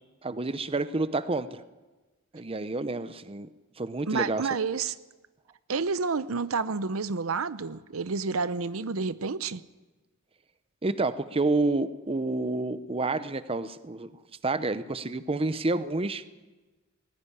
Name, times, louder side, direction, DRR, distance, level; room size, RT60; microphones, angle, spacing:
voice 1, 0.2-1.6 2.3-3.5 3.8-4.5 10.8-14.1 14.4-16.2, right 2 dB, 25° right, 0.7 m, -29 dB
voice 2, 4.1-4.9 5.7-9.6, right 4 dB, 85° right, 0.7 m, -29 dB
19.5 x 15.0 x 9.9 m
head